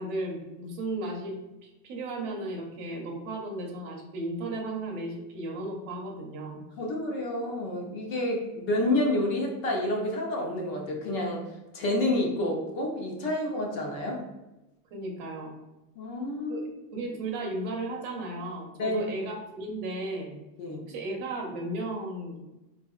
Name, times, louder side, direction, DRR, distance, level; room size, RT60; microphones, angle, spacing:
voice 1, 0.0-6.7 14.9-15.5 16.5-16.6 16.9-20.3 20.8-22.4, right 2 dB, 50° right, 0 dB, 0.9 m, -35 dB
voice 2, 6.8-11.4 11.7-14.2 16.0-16.7 18.8-19.0 20.6-20.8, left 1 dB, 50° left, -1 dB, 0.9 m, -29 dB
3.9 x 2.5 x 2.4 m, 1.0 s
supercardioid pair, 165°, 48 cm